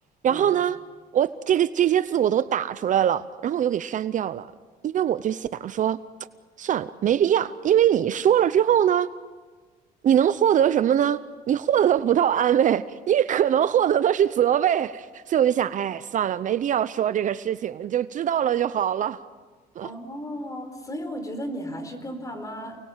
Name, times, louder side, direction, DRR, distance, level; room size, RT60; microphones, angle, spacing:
voice 1, 0.2-0.8 1.1-4.5 4.8-6.0 6.6-9.1 10.0-11.2 11.5-19.2 19.8-19.9, right 10 dB, 50° right, 0.7 m, -22 dB
voice 2, 19.8-22.8, equal, 20° left, 4.2 m, -34 dB
29.0 x 20.5 x 7.4 m
cardioid pair, 110°, 17 cm